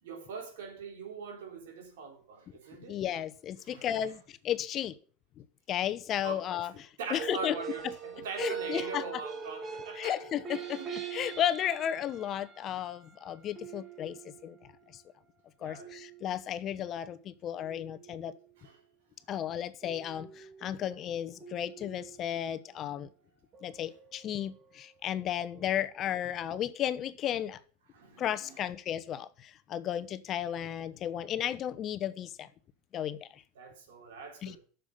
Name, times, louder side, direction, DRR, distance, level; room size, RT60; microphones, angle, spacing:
voice 1, 0.0-3.0 3.6-4.1 6.2-6.5 7.0-10.2 10.8-10.9 15.6-15.9 18.6-18.8 25.7-25.8 27.9-28.7 30.5-30.6 33.6-34.6, right 5 dB, 85° right, 3.7 m, -43 dB
voice 2, 2.9-4.9 5.4-7.5 8.4-9.2 9.9-14.6 15.6-18.3 19.3-23.1 23.6-27.6 28.2-32.5 32.9-33.4 34.4-34.6, left 10 dB, 45° left, 1.0 m, -34 dB
sound 1, 7.0-14.8 15.8-16.6 17.6-18.6 19.8-22.7 23.5-24.9 25.1-25.7, right 7 dB, 35° right, 2.2 m, -43 dB
8.2 x 6.9 x 7.8 m
supercardioid pair, 105°, 0 cm